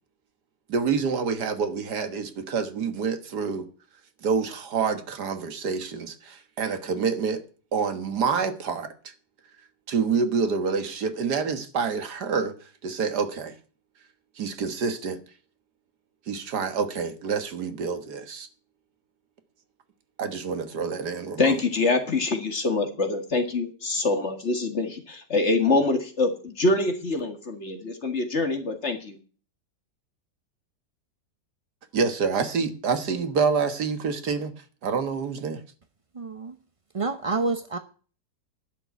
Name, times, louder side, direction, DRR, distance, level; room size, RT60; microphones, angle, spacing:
voice 1, 0.7-3.7 4.2-7.4 7.7-8.9 9.9-12.6 12.8-13.6 14.4-15.2 16.3-18.5 20.2-21.5 31.9-34.5 34.8-35.6, right 5 dB, 75° right, 2.0 m, -27 dB
voice 2, 21.4-29.2, left 3 dB, 40° left, 2.2 m, -25 dB
voice 3, 36.1-36.5 36.9-37.8, right 3 dB, 40° right, 0.4 m, -28 dB
11.5 x 6.8 x 9.3 m
omnidirectional pair, 1.8 m